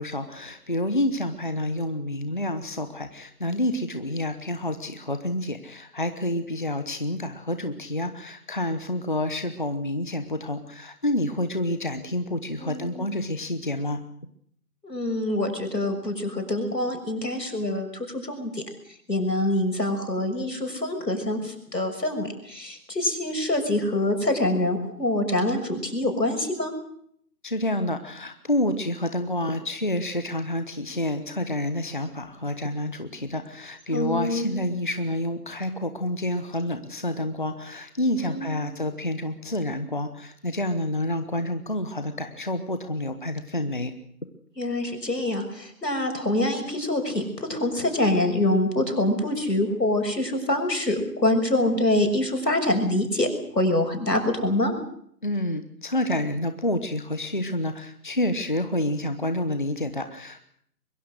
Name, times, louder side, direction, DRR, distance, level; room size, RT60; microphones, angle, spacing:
voice 1, 0.0-14.0 27.4-43.9 55.2-60.5, left 1 dB, 30° left, 9 dB, 1.1 m, -28 dB
voice 2, 12.6-13.1 14.8-18.6 19.1-26.7 33.9-34.6 38.2-38.6 44.6-53.3 53.5-54.7, left 1 dB, 85° left, 6 dB, 6.6 m, -25 dB
23.0 x 22.5 x 6.5 m, 0.67 s
figure-of-eight pair, 170°, 49 cm